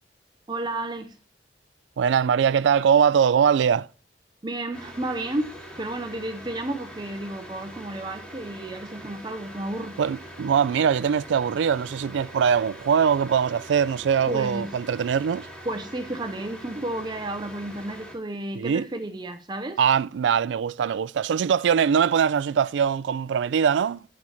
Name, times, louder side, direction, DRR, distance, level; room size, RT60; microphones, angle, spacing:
voice 1, 0.5-1.2 4.4-10.0 14.3-14.7 15.7-19.8, right 1 dB, 25° right, 0.6 m, -32 dB
voice 2, 2.0-3.9 10.0-15.5 18.5-18.9 19.8-24.0, right 7 dB, 90° right, 0.3 m, -22 dB
sound 1, 4.7-18.1, equal, 5° left, 2.8 m, -43 dB
7.7 x 6.1 x 5.7 m
head